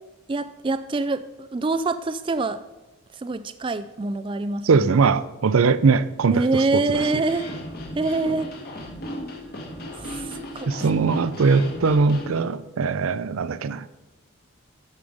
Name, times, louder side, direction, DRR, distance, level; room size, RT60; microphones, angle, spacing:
voice 1, 0.3-2.6 3.1-5.0 6.3-7.5 7.9-8.5 10.0-10.7, right 3 dB, 25° right, 0.3 m, -25 dB
voice 2, 4.6-7.0 10.7-13.9, right 4 dB, 85° right, 0.5 m, -21 dB
sound 1, 6.9-12.4, equal, 45° left, 1.8 m, -36 dB
13.0 x 5.5 x 5.0 m
head